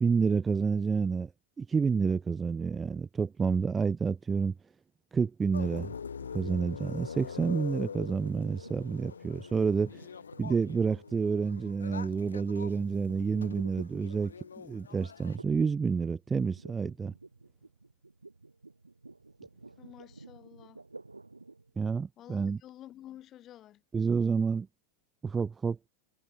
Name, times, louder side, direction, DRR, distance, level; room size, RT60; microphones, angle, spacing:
voice 1, 0.0-1.3 1.6-4.5 5.1-5.9 6.3-10.1 10.4-17.1 21.8-22.6 23.9-24.7 25.2-25.8, right 5 dB, 15° right, 0.3 m, -29 dB
sound 1, 5.5-15.4, left 6 dB, 70° left, 0.7 m, -44 dB
sound 2, 8.3-14.6 15.4-15.8 16.0-21.7, right 3 dB, 80° right, 2.6 m, -51 dB
voice 2, 19.8-20.8 22.2-23.8, left 12 dB, 30° left, 3.3 m, -50 dB
figure-of-eight pair, 90°, 0 cm